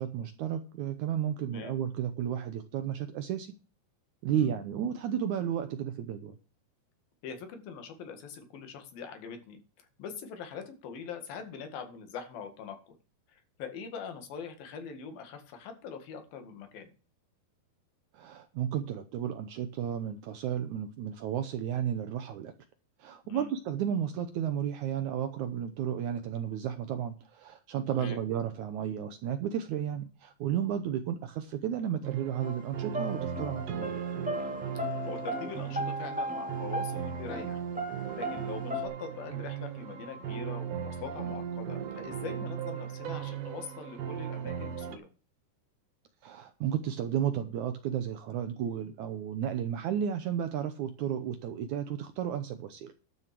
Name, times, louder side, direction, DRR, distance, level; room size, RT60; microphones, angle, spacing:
voice 1, 0.0-3.5 4.2-6.4 18.1-22.5 23.0-34.0 46.2-52.9, right 9 dB, 75° right, 9 dB, 1.9 m, -33 dB
voice 2, 1.5-1.8 4.3-4.5 7.2-13.0 13.3-16.9 23.3-23.5 27.9-28.2 34.8-37.6 38.1-45.1 49.7-49.8, left 6 dB, 75° left, 7 dB, 3.7 m, -43 dB
sound 1, 32.0-45.0, right 8 dB, 55° right, 1.9 m, -37 dB
sound 2, 32.4-32.6 32.9-37.5 37.7-38.9, equal, 5° right, 0.7 m, -36 dB
12.5 x 6.7 x 5.9 m, 0.36 s
omnidirectional pair, 4.3 m